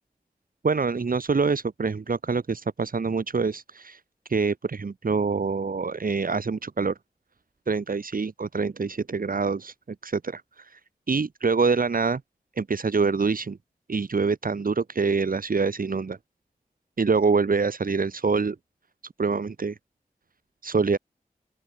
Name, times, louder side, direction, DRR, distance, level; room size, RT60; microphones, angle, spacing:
voice 1, 0.6-4.0 4.3-6.9 7.7-9.7 10.0-10.8 11.1-12.2 12.6-13.6 13.9-16.2 17.0-18.6 19.2-19.8 20.6-21.0, right 4 dB, 65° right, 2.2 m, -25 dB
open air
wide cardioid pair, 85°, 15 cm